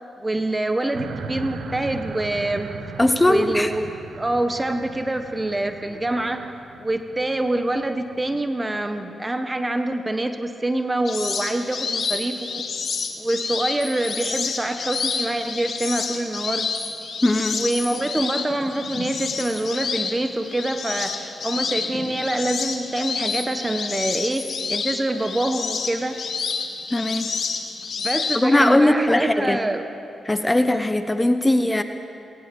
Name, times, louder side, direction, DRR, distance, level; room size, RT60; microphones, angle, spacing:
voice 1, 0.2-2.7 3.3-3.9 4.2-6.5 6.8-12.7 13.2-16.7 17.5-26.2 28.0-29.8, right 1 dB, 20° right, 7 dB, 1.4 m, -25 dB
sound 1, 0.9-8.4, right 5 dB, 80° right, 1.5 m, -38 dB
voice 2, 3.0-3.7 17.2-17.6 26.9-27.3 28.3-29.6 30.2-31.8, left 1 dB, 15° left, 9 dB, 1.1 m, -19 dB
sound 2, 11.1-28.4, left 5 dB, 60° left, 2.0 m, -29 dB
19.5 x 18.5 x 7.1 m, 2.8 s
supercardioid pair, 50°, 0 cm